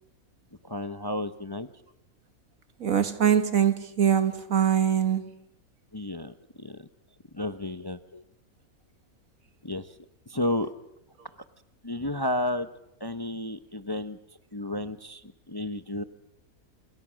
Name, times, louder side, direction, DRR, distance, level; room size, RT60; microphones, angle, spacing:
voice 1, 0.6-1.7 5.9-6.9 7.3-8.2 9.6-9.9 10.3-10.7 11.8-12.7 13.0-14.2 14.5-16.0, left 1 dB, 20° left, 0.9 m, -32 dB
voice 2, 2.8-5.4, right 9 dB, 65° right, 1.9 m, -23 dB
29.5 x 28.5 x 6.4 m
omnidirectional pair, 1.5 m